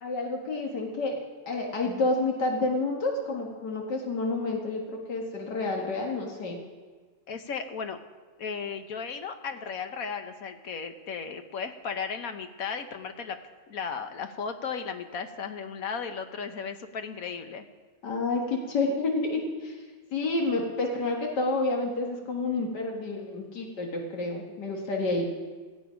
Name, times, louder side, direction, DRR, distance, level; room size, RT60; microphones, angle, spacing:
voice 1, 0.0-6.6 18.0-19.8 20.1-25.2, left 2 dB, 85° left, 0 dB, 2.3 m, -29 dB
voice 2, 7.3-8.0 8.4-13.4 13.7-17.6, left 6 dB, 60° left, 8 dB, 1.4 m, -35 dB
18.0 x 14.0 x 5.1 m, 1.4 s
omnidirectional pair, 1.8 m